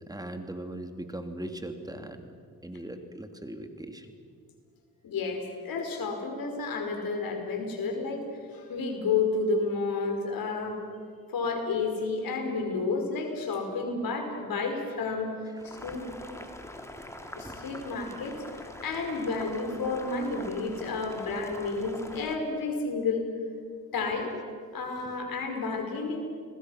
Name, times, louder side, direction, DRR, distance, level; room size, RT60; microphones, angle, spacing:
voice 1, 0.1-2.3 2.6-4.1 15.6-15.9 17.5-17.6, right 1 dB, 10° right, 6 dB, 2.6 m, -39 dB
voice 2, 5.0-10.8 11.3-15.3 15.6-16.2 17.3-23.3 23.9-24.3 24.7-26.2, left 4 dB, 75° left, 4 dB, 5.1 m, -31 dB
Boiling, 15.6-22.4, left 1 dB, 10° left, 2.7 m, -44 dB
30.0 x 21.0 x 6.4 m, 2.2 s
cardioid pair, 80°, 36 cm